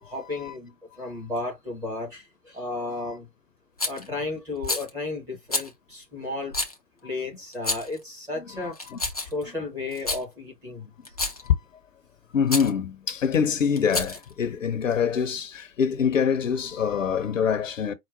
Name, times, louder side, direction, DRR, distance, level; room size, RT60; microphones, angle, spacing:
voice 1, 0.0-3.3 3.8-6.6 7.0-8.8 9.2-10.9, left 2 dB, 5° right, 0.8 m, -33 dB
Rattle, 3.8-4.1 4.6-4.9 5.5-5.7 6.5-6.8 7.5-8.0 8.7-9.4 9.9-10.2 11.0-11.5 12.5-12.7 13.8-14.3, left 2 dB, 25° left, 0.4 m, -29 dB
voice 2, 8.6-9.0 11.4-11.5 12.3-17.9, left 7 dB, 50° left, 0.8 m, -25 dB
4.8 x 2.3 x 4.6 m
figure-of-eight pair, 135°, 49 cm